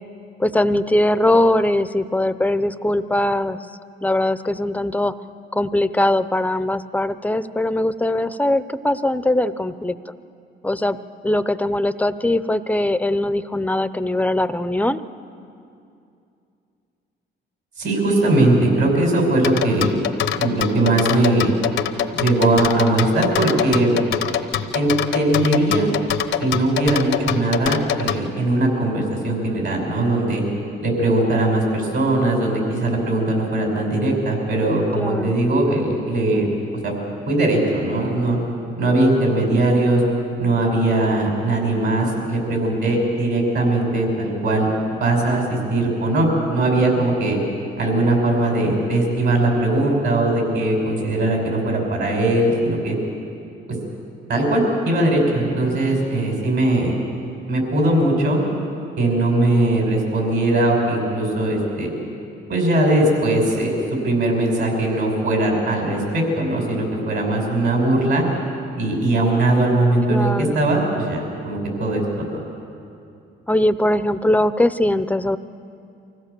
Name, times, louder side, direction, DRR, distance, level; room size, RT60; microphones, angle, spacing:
voice 1, 0.4-3.6 4.0-5.1 5.5-10.0 10.6-11.0 11.2-15.0 34.9-35.3 70.1-70.6 73.5-75.4, left 1 dB, 10° left, 13 dB, 0.6 m, -21 dB
voice 2, 17.8-20.0 20.4-21.5 22.1-23.9 24.7-25.9 26.4-30.4 30.8-36.5 36.8-36.9 37.3-38.4 38.8-40.0 40.4-47.4 47.8-53.0 54.3-56.9 57.5-58.4 59.0-61.9 62.5-63.8 64.0-68.2 68.8-72.2, right 2 dB, 65° right, 1 dB, 5.9 m, -20 dB
sound 1, 19.4-28.2, left 10 dB, 75° left, 0.8 m, -23 dB
24.5 x 16.0 x 6.8 m, 2.5 s
cardioid pair, 90°, 20 cm